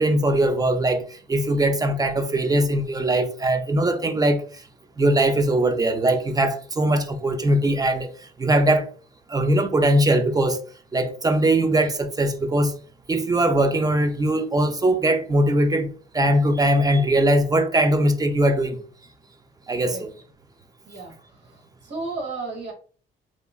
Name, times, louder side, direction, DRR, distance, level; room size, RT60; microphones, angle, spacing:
voice 1, 0.0-4.6 5.0-8.9 9.3-10.6 10.9-12.7 13.1-18.8 19.7-20.1, right 1 dB, 20° right, 0.4 m, -21 dB
voice 2, 20.8-22.7, right 3 dB, 60° right, 1.3 m, -34 dB
2.9 x 2.4 x 2.3 m
cardioid pair, 90°, 20 cm